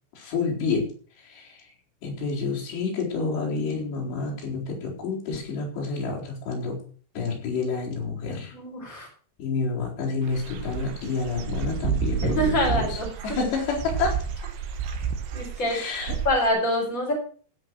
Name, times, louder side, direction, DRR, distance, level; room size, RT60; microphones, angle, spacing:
voice 1, 0.1-0.9 1.2-1.6 2.0-6.8 7.1-8.5 9.4-13.0 13.2-14.2 15.7-16.1, left 4 dB, 65° left, -3 dB, 6.3 m, -29 dB
voice 2, 8.5-9.1 12.3-13.1 15.3-15.8 16.2-17.1, equal, 15° left, -1 dB, 5.0 m, -25 dB
Dog / Bird, 10.2-16.5, right 7 dB, 80° right, 3.8 m, -31 dB
16.0 x 6.5 x 6.4 m, 0.43 s
omnidirectional pair, 5.3 m